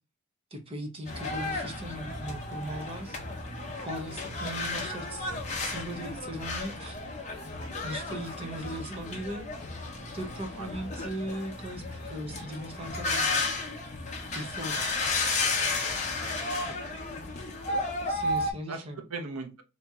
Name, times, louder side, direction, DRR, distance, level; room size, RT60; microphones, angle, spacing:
voice 1, 0.5-3.2 3.8-5.3 5.6-7.0 7.8-9.4 10.1-13.3 14.3-15.0 18.1-19.0, right 1 dB, 25° right, 0.8 m, -38 dB
sound 1, 1.1-18.5, left 3 dB, 35° left, 0.7 m, -33 dB
voice 2, 16.2-17.1 18.7-18.8 19.1-19.6, right 3 dB, 90° right, 0.8 m, -41 dB
2.9 x 2.7 x 3.5 m
head